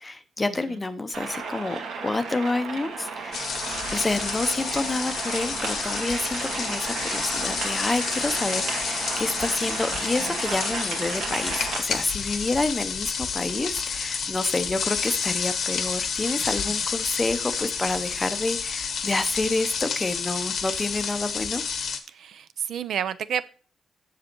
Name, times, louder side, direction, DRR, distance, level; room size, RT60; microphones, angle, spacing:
voice 1, 0.0-3.4 3.9-21.6, left 2 dB, 15° left, 11 dB, 0.6 m, -28 dB
sound 1, 1.1-11.8, right 5 dB, 90° right, 2.1 m, -33 dB
sound 2, 3.3-22.0, left 6 dB, 50° left, 1.0 m, -30 dB
voice 2, 9.9-10.3 16.4-16.6 22.1-23.4, right 9 dB, 65° right, 14 dB, 0.5 m, -31 dB
7.6 x 6.9 x 4.4 m, 0.38 s
wide cardioid pair, 170°, 0 cm